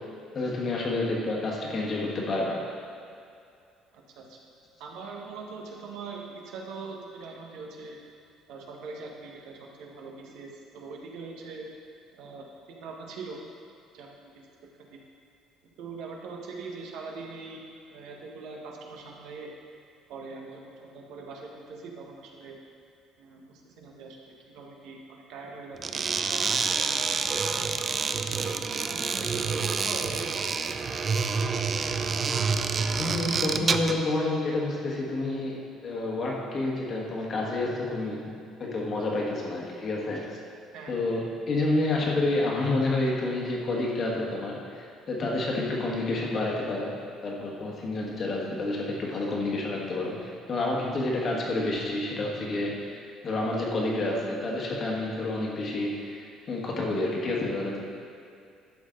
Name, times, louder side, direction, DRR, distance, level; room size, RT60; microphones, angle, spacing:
voice 1, 0.3-2.6 33.0-38.3 38.6-40.4 40.9-46.9 47.2-57.8, left 2 dB, 30° left, -2 dB, 1.5 m, -29 dB
voice 2, 3.9-4.4 4.8-8.0 8.5-11.7 12.1-13.4 13.9-14.3 14.8-15.0 15.8-19.5 20.1-22.6 23.2-27.0 28.2-28.6 28.9-30.5 33.2-33.3 40.7-40.9 51.8-51.9, right 4 dB, 65° right, 0 dB, 1.4 m, -42 dB
sound 1, 25.8-34.0, right 5 dB, 25° right, 0.3 m, -28 dB
12.0 x 7.8 x 3.9 m, 2.4 s
cardioid pair, 175°, 0 cm